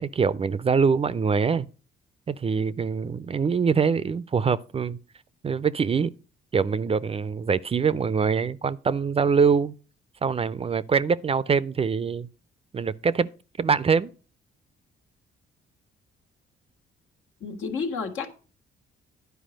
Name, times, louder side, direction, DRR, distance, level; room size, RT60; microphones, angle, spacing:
voice 1, 0.0-1.7 2.3-5.0 5.4-6.1 6.5-9.7 10.2-12.3 12.7-13.3 13.6-14.1, right 5 dB, 30° right, 0.4 m, -24 dB
voice 2, 17.4-18.3, left 5 dB, 80° left, 1.7 m, -30 dB
10.5 x 4.7 x 6.3 m
cardioid pair, 90°, 20 cm